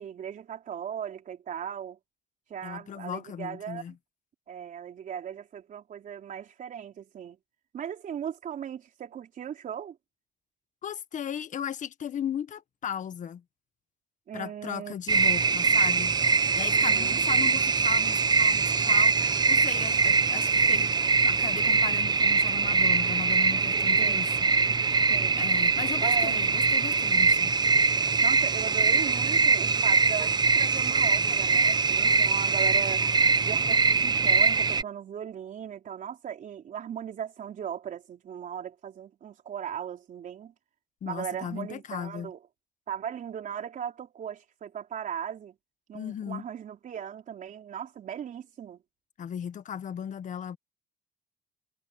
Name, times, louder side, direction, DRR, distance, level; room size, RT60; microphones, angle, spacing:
voice 1, 0.0-2.0 2.5-3.8 4.5-7.4 7.7-10.0 14.3-14.9 16.7-17.2 24.0-24.2 25.1-25.4 26.0-26.4 28.2-33.1 33.4-40.5 41.0-42.4 42.9-45.6 45.9-48.8, right 9 dB, 50° right, 4.1 m, -38 dB
voice 2, 2.6-3.9 10.8-13.4 14.3-16.1 16.5-19.1 19.5-20.9 21.2-24.3 25.4-27.5 41.0-42.3 45.9-46.4 49.2-50.6, left 9 dB, 50° left, 1.6 m, -36 dB
sound 1, 15.1-34.8, right 4 dB, 25° right, 0.9 m, -23 dB
cardioid pair, 110°, 17 cm